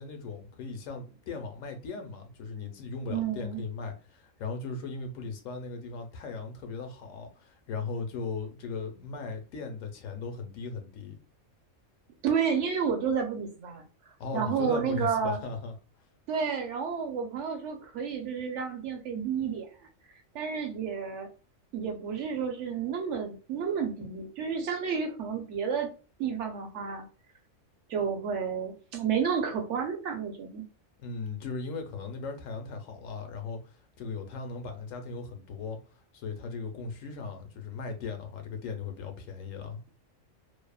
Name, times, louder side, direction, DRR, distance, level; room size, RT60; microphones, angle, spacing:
voice 1, 0.0-11.2 14.2-15.7 31.0-35.8 36.1-39.8, left 4 dB, 80° left, 1.0 m, -38 dB
voice 2, 3.1-3.6 12.2-13.8 14.3-15.4 16.3-19.7 20.3-21.3 21.7-25.9 26.2-27.0 27.9-30.6, right 6 dB, 70° right, 0.9 m, -31 dB
2.7 x 2.0 x 2.2 m
omnidirectional pair, 1.3 m